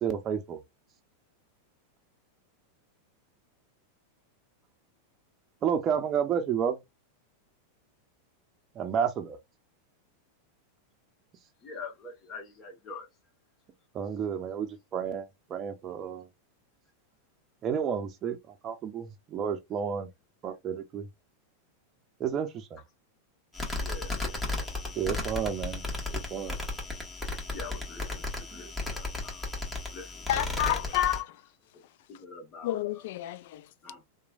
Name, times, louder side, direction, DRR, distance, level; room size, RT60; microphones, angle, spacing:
voice 1, 0.0-0.6 5.6-6.8 8.8-9.4 13.9-16.3 17.6-18.4 18.6-20.1 20.4-21.1 22.2-22.8 25.0-25.8 26.1-26.6 28.5-28.7, right 7 dB, 35° right, 0.6 m, -31 dB
voice 2, 11.6-13.1 23.8-24.7 27.5-29.5 29.9-30.9 31.7-31.8 32.1-33.0 33.8-34.0, left 4 dB, 35° left, 1.2 m, -45 dB
sound 1, 23.5-31.2, left 2 dB, 15° left, 1.2 m, -34 dB
voice 3, 30.3-31.4 32.6-33.7, left 13 dB, 60° left, 0.3 m, -29 dB
3.0 x 2.2 x 2.4 m
hypercardioid pair, 95°, 0 cm